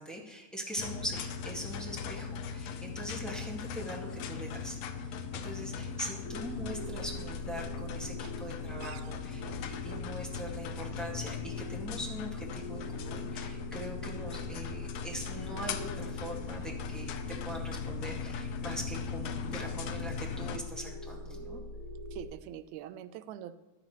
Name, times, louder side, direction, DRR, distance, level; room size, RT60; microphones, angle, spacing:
voice 1, 0.0-21.6, equal, ahead, -4 dB, 0.7 m, -42 dB
sound 1, 0.8-20.6, left 5 dB, 75° left, 1.6 m, -39 dB
sound 2, 6.2-22.3, left 2 dB, 30° left, 2.6 m, -44 dB
voice 2, 22.1-23.6, right 11 dB, 80° right, 12 dB, 1.8 m, -44 dB
15.0 x 11.0 x 3.1 m, 1.1 s
omnidirectional pair, 3.5 m